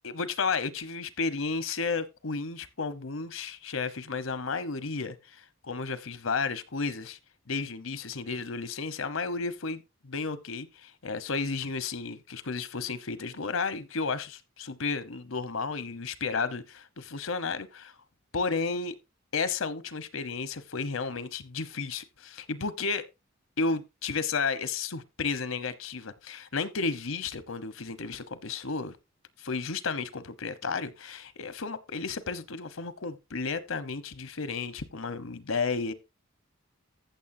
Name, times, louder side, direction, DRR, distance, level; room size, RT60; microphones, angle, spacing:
voice 1, 0.0-7.2 7.5-18.0 18.3-19.0 19.3-23.0 23.6-28.9 29.4-35.9, left 4 dB, 80° left, 1.0 m, -33 dB
14.5 x 7.0 x 2.7 m
head